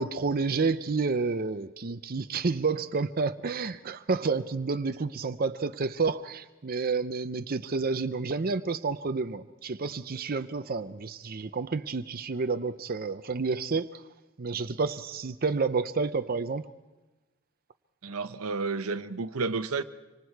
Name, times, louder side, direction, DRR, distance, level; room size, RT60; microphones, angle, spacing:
voice 1, 0.0-14.0 14.4-16.7, right 4 dB, 45° right, 0.6 m, -30 dB
voice 2, 18.0-19.8, right 4 dB, 85° right, 0.9 m, -31 dB
25.5 x 25.5 x 4.7 m
head